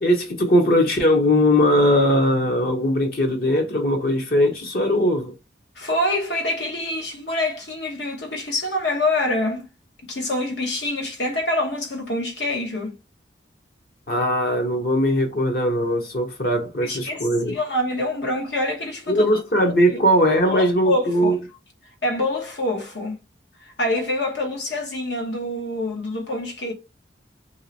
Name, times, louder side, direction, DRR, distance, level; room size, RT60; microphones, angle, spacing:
voice 1, 0.0-5.3 14.1-17.6 19.1-21.4, equal, 55° left, 0.9 m, -20 dB
voice 2, 5.8-9.7 10.1-12.9 16.8-19.3 19.9-20.0 20.5-21.3 22.0-23.2 23.6-26.7, left 1 dB, 75° left, 1.0 m, -26 dB
3.0 x 2.8 x 2.8 m
head